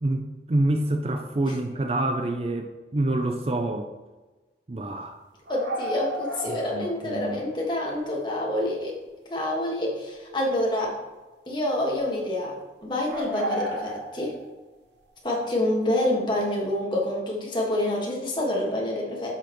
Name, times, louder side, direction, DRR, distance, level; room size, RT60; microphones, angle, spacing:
voice 1, 0.0-3.9 4.7-5.2 6.5-7.4, right 1 dB, 35° right, 5 dB, 0.5 m, -27 dB
voice 2, 5.5-9.0 9.3-11.0 11.5-14.4 15.2-19.3, left 1 dB, 25° left, -2 dB, 1.6 m, -27 dB
sound 1, 5.5-7.2 7.5-7.6 10.1-10.8 11.2-11.5 13.1-14.5, equal, 80° right, 1.1 m, -33 dB
9.9 x 6.6 x 3.1 m, 1.2 s
head